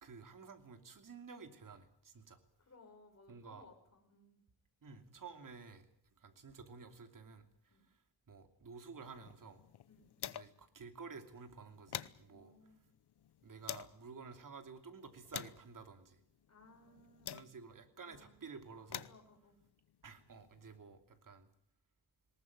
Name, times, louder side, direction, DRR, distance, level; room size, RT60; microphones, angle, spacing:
voice 1, 0.0-2.4 3.3-3.6 4.8-8.0 8.3-9.6 10.3-12.5 13.4-16.2 17.3-19.1 20.0-21.5, right 5 dB, 50° right, 8 dB, 2.9 m, -52 dB
voice 2, 2.6-4.5 7.7-7.9 9.9-10.3 12.3-12.8 16.5-17.4 18.0-18.4 19.1-19.6, left 2 dB, 40° left, 2 dB, 5.9 m, -63 dB
sound 1, 8.9-10.7 11.0-11.1 11.5-14.0 14.6-17.9 18.6-20.8, left 11 dB, 75° left, 0.9 m, -49 dB
20.5 x 19.0 x 9.5 m, 0.65 s
wide cardioid pair, 130°, 40 cm